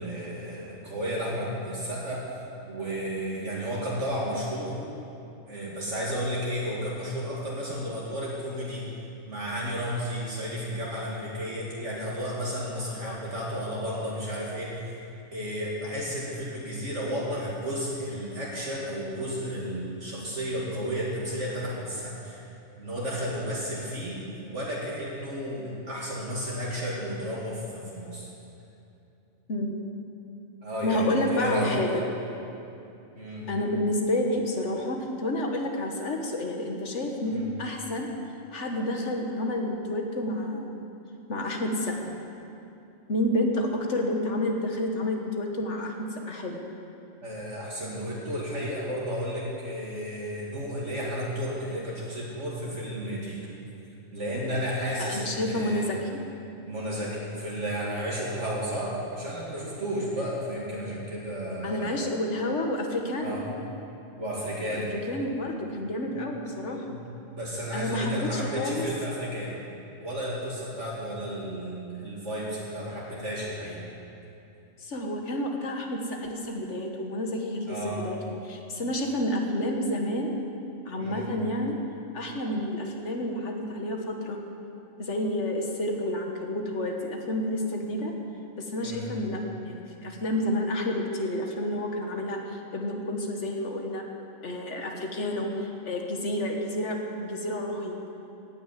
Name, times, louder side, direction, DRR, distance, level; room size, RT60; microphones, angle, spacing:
voice 1, 0.0-2.2 2.7-4.8 5.5-8.8 9.3-15.0 15.3-22.4 22.8-28.3 30.6-31.8 33.1-33.5 37.2-37.4 47.2-53.4 54.1-55.9 56.7-62.0 63.2-63.5 64.2-64.9 66.1-66.2 66.9-67.0 67.3-69.6 70.0-73.8 77.7-78.0 81.0-81.3 88.8-89.1, equal, 60° right, -6 dB, 2.6 m, -32 dB
voice 2, 30.8-32.0 33.5-38.1 38.5-40.9 41.3-42.1 43.1-46.6 47.8-47.9 55.0-56.2 61.6-63.4 64.7-66.9 67.7-68.9 74.8-80.3 80.9-81.8 82.1-84.4 85.0-88.1 88.6-94.0 94.4-98.1, left 1 dB, 60° left, 2 dB, 1.7 m, -30 dB
16.5 x 6.3 x 9.2 m, 2.8 s
omnidirectional pair, 1.4 m